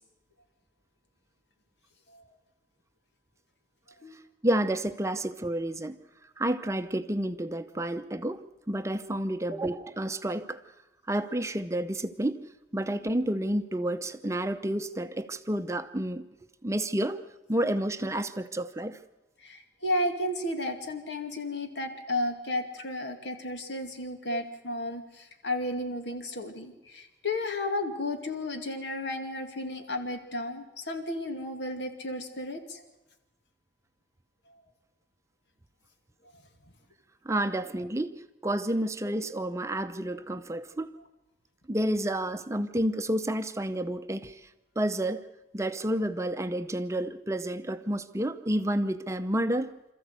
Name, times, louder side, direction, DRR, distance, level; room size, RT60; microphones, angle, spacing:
voice 1, 4.4-6.0 6.4-8.4 8.7-10.6 11.1-12.4 12.7-16.2 16.6-17.2 17.5-19.0 24.3-24.4 37.2-38.1 38.4-40.9 41.7-44.5 44.8-45.3 45.5-49.7, right 1 dB, 15° right, 0.6 m, -30 dB
voice 2, 19.4-32.8, left 1 dB, 80° left, 2.3 m, -33 dB
27.0 x 14.0 x 8.1 m
head